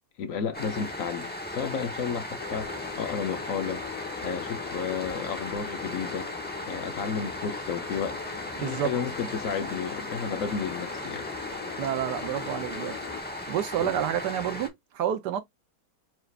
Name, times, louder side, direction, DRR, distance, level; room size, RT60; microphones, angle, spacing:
voice 1, 0.2-3.8 4.2-6.3 6.7-8.2 8.6-11.3 13.8-14.0, left 6 dB, 60° left, 1.0 m, -32 dB
sound 1, 0.5-14.7, left 1 dB, 10° left, 0.4 m, -37 dB
sound 2, 2.4-13.2, left 9 dB, 80° left, 1.3 m, -41 dB
voice 2, 8.6-8.9 11.8-12.9 13.2-15.4, right 10 dB, 80° right, 1.4 m, -29 dB
4.8 x 2.4 x 3.2 m
omnidirectional pair, 1.8 m